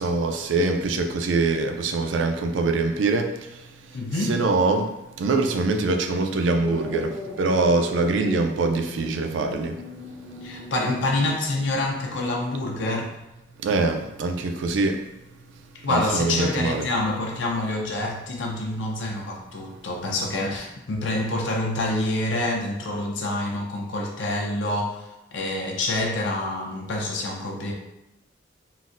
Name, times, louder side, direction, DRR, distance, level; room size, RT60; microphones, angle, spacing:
voice 1, 0.0-4.0 4.3-9.9 13.6-15.0 15.9-16.9, right 3 dB, 75° right, 5 dB, 0.4 m, -24 dB
voice 2, 3.9-4.4 10.4-13.1 15.8-27.7, left 2 dB, 75° left, 0 dB, 0.6 m, -27 dB
sound 1, 6.6-13.2, left 2 dB, 25° left, 0.5 m, -37 dB
3.9 x 2.1 x 2.5 m, 0.94 s
head